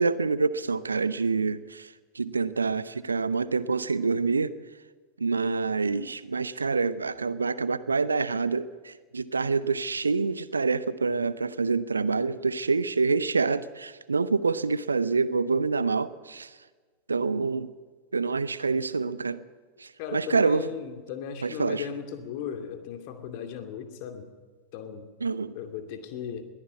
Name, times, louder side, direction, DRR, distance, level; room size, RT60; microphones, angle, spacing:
voice 1, 0.0-1.9 2.1-4.5 5.2-16.5 17.1-17.7 18.1-19.4 19.8-20.6 21.4-21.8 25.2-25.5, right 4 dB, 75° right, 17 dB, 0.7 m, -26 dB
voice 2, 20.0-24.3 24.7-25.1 25.5-26.5, left 8 dB, 50° left, 6 dB, 2.5 m, -37 dB
21.5 x 15.0 x 8.2 m, 1.4 s
figure-of-eight pair, 85°, 0 cm